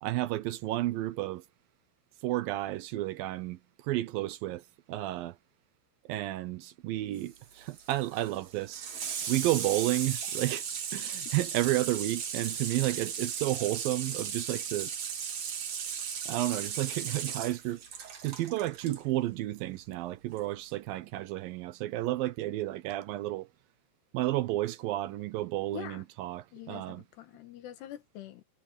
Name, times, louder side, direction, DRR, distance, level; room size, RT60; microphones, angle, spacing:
voice 1, 0.0-1.4 2.2-5.4 6.1-8.9 9.3-10.7 10.9-14.9 16.3-17.8 18.2-23.5 24.1-27.0, right 16 dB, 75° right, 2.3 m, -32 dB
Water tap faucet / Sink (filling or washing), 7.2-19.0 20.3-20.4, right 7 dB, 50° right, 3.1 m, -37 dB
voice 2, 25.7-26.0 26.5-28.4, left 11 dB, 90° left, 4.0 m, -45 dB
omnidirectional pair, 4.6 m